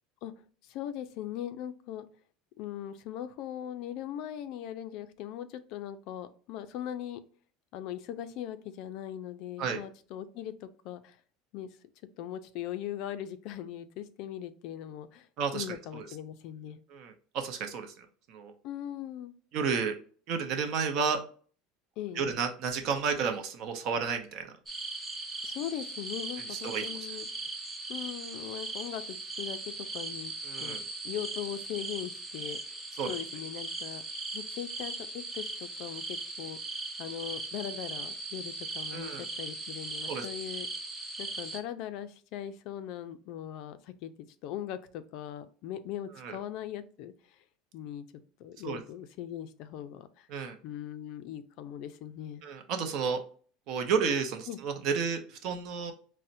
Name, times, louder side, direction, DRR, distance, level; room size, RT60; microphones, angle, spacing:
voice 1, 0.6-2.1 2.6-7.2 7.7-11.2 11.5-11.7 12.2-15.3 15.5-16.8 18.6-19.3 22.0-22.3 25.4-27.3 27.9-30.8 31.0-32.6 33.0-34.0 34.3-36.6 37.0-40.7 41.2-44.1 44.4-47.4 47.7-50.3 50.6-52.4 54.5-54.6, left 11 dB, 60° left, 11 dB, 0.3 m, -40 dB
voice 2, 16.9-18.5 19.5-19.9 20.3-21.2 22.2-24.5 26.6-26.8 30.5-30.8 33.0-33.1 38.9-39.2 40.1-40.2 46.2-46.4 48.6-48.8 50.3-50.6 52.4-53.2 53.7-55.9, right 6 dB, 55° right, 6 dB, 0.7 m, -31 dB
sound 1, 24.7-41.6, right 2 dB, 10° right, 0.4 m, -39 dB
4.1 x 2.0 x 2.5 m, 0.43 s
supercardioid pair, 130°, 0 cm